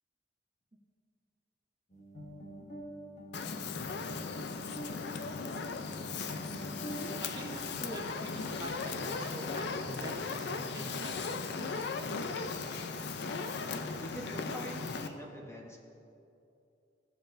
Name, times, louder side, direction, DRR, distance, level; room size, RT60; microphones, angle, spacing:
sound 1, 1.9-7.3, equal, 40° left, 1.1 m, -46 dB
Fire, 3.3-15.1, left 4 dB, 65° left, 0.5 m, -37 dB
voice 1, 7.2-11.4, right 1 dB, 25° right, 0 dB, 0.7 m, -45 dB
voice 2, 14.0-15.8, equal, 15° left, -1 dB, 1.0 m, -44 dB
16.0 x 6.9 x 2.6 m, 2.7 s
head